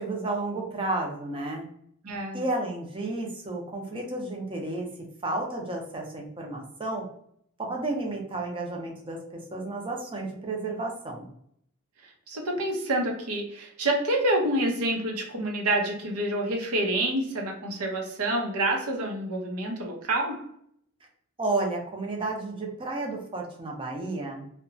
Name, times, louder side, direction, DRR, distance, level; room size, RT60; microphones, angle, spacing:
voice 1, 0.0-1.6 2.3-4.9 5.2-7.1 7.6-11.3 21.4-24.4, right 2 dB, 25° right, 0 dB, 0.5 m, -32 dB
voice 2, 2.0-2.4 12.0-20.5, right 1 dB, 85° right, 1 dB, 0.7 m, -28 dB
2.8 x 2.2 x 2.6 m, 0.69 s
head